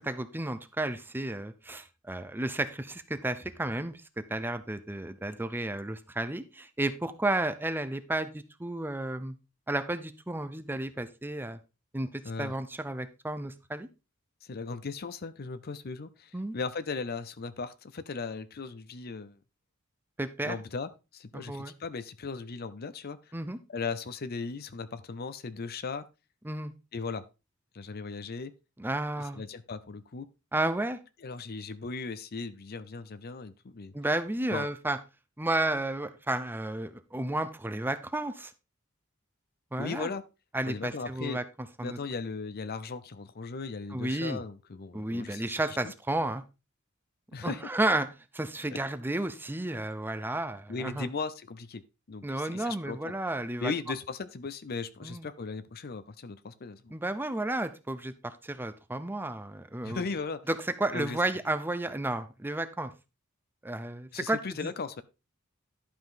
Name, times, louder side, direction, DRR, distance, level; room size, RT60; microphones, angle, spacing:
voice 1, 0.0-4.0 4.3-9.4 9.7-11.6 11.9-13.9 16.3-16.6 20.2-20.6 21.3-21.7 23.3-23.6 26.4-26.7 28.8-29.4 30.5-31.0 33.9-35.0 35.4-38.5 39.7-40.1 40.5-41.4 41.8-42.0 43.9-44.4 44.9-46.4 47.4-48.1 48.3-51.1 52.2-53.7 55.0-55.2 56.9-60.0 60.5-62.9 63.6-64.7, right 1 dB, 10° right, 11 dB, 0.6 m, -32 dB
voice 2, 14.4-19.4 20.4-23.2 23.7-26.1 26.9-27.2 27.7-28.5 29.2-30.3 31.2-33.9 34.5-34.7 39.8-40.2 40.7-41.4 41.8-45.8 47.3-47.6 48.7-48.8 50.7-51.8 52.1-53.2 53.6-56.9 59.8-60.4 60.9-61.2 64.1-65.0, left 4 dB, 50° left, 14 dB, 0.6 m, -37 dB
11.5 x 5.4 x 3.8 m, 0.28 s
head